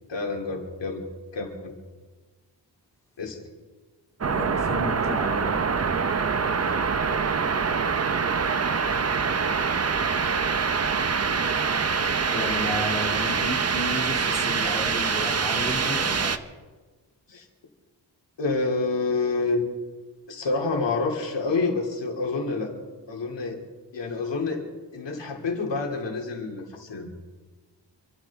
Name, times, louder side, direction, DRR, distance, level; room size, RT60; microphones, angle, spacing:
voice 1, 0.1-1.1 1.3-1.7 3.2-3.4 5.6-5.8 17.3-17.5 18.4-19.6 20.3-22.7 23.1-23.6 23.9-24.6 24.9-27.1, left 3 dB, 75° left, 1 dB, 3.0 m, -28 dB
voice 2, 4.2-5.6 12.3-16.3, left 2 dB, 5° left, -2 dB, 2.8 m, -33 dB
sound 1, 4.2-16.4, right 5 dB, 35° right, 0.8 m, -25 dB
27.5 x 14.0 x 3.6 m, 1.3 s
wide cardioid pair, 135°, 43 cm